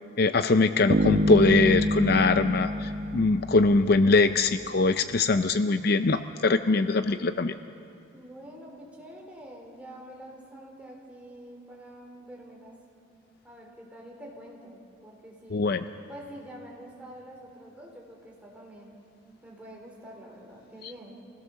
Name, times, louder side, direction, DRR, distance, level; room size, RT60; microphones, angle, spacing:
voice 1, 0.2-7.6 15.5-15.8, left 3 dB, 50° left, 10 dB, 0.5 m, -22 dB
sound 1, 0.9-3.9, equal, 50° right, 1.0 m, -26 dB
voice 2, 8.1-12.8 13.4-15.7 16.1-19.0 19.4-21.2, right 1 dB, 5° right, -2 dB, 3.6 m, -46 dB
25.5 x 16.5 x 7.0 m, 2.6 s
head